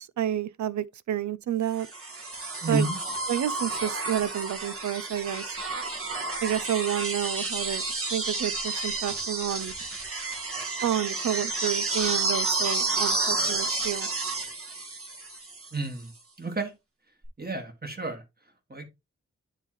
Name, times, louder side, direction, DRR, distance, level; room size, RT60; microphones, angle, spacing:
voice 1, 0.0-1.9 2.7-2.9 3.3-5.4 6.4-7.8 8.1-9.7 10.8-14.1, right 11 dB, 75° right, 0.4 m, -29 dB
sound 1, 1.8-15.8 17.2-17.3, right 3 dB, 50° right, 1.8 m, -31 dB
voice 2, 2.6-3.0 15.7-16.1 16.4-16.7 17.4-18.2 18.7-18.8, right 2 dB, 35° right, 1.7 m, -30 dB
9.9 x 3.7 x 3.0 m
wide cardioid pair, 90°, 29 cm